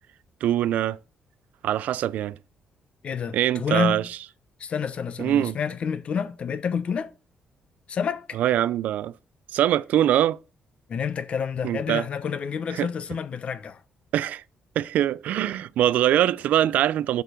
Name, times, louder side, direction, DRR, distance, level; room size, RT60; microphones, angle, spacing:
voice 1, 0.4-1.0 1.6-2.4 3.3-4.0 5.2-5.6 8.3-9.1 9.5-10.4 11.6-12.0 12.7-12.9 14.1-14.4 14.8-17.2, right 12 dB, 75° right, 0.3 m, -23 dB
voice 2, 3.0-4.1 4.6-7.1 7.9-8.4 10.9-13.8, left 7 dB, 45° left, 0.7 m, -29 dB
6.6 x 5.3 x 6.1 m
cardioid pair, 120°, 3 cm